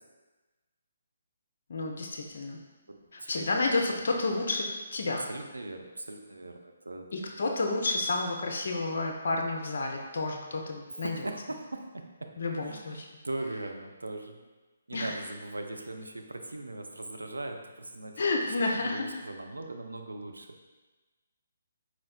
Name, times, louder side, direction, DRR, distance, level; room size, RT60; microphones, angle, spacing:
voice 1, 1.7-2.6 3.1-5.3 7.1-11.3 12.4-13.1 14.9-15.2 18.2-19.2, left 3 dB, 55° left, 1 dB, 0.5 m, -30 dB
voice 2, 2.9-3.5 5.3-7.1 11.0-12.0 12.6-14.4 14.9-18.2 18.8-20.5, right 2 dB, 80° right, 4 dB, 0.4 m, -39 dB
4.3 x 4.1 x 2.3 m, 1.2 s
figure-of-eight pair, 140°, 0 cm